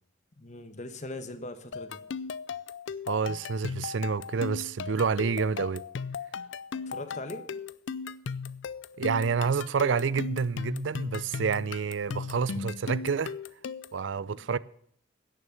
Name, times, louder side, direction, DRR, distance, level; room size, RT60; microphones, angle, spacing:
voice 1, 0.4-2.0 6.8-7.5 14.2-14.5, left 2 dB, 40° left, 1.2 m, -40 dB
sound 1, 1.7-14.0, left 5 dB, 85° left, 0.5 m, -37 dB
voice 2, 3.1-5.8 9.0-13.3 13.9-14.6, right 5 dB, 90° right, 0.5 m, -28 dB
16.5 x 6.5 x 7.1 m
head